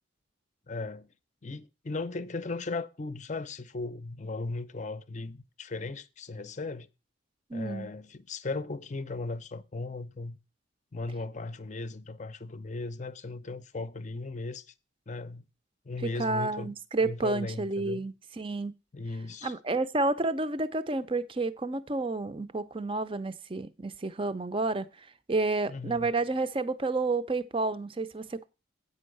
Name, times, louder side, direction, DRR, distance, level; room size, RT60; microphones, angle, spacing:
voice 1, 0.7-1.1 1.4-6.9 7.5-10.4 10.9-14.7 15.1-15.4 15.8-16.7 17.0-18.0 18.9-19.5 25.7-26.1, left 3 dB, 35° left, 0.6 m, -37 dB
voice 2, 7.5-7.9 16.0-18.7 19.4-28.5, right 3 dB, 25° right, 0.5 m, -30 dB
8.6 x 5.4 x 6.5 m
head